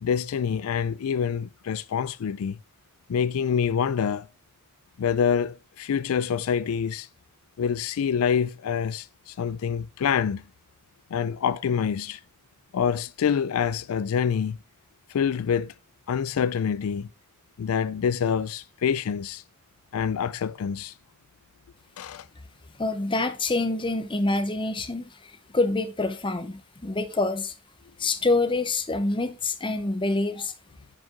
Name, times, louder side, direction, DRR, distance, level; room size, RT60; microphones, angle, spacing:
voice 1, 0.0-2.6 3.1-4.3 5.0-7.1 7.6-10.4 11.1-12.2 12.7-14.6 15.1-15.7 16.1-17.1 17.6-19.4 19.9-20.9 22.0-22.3, left 7 dB, 75° left, 0.4 m, -26 dB
voice 2, 22.8-25.1 25.5-27.5 28.0-30.5, left 2 dB, 20° left, 0.8 m, -26 dB
9.5 x 5.2 x 3.7 m
head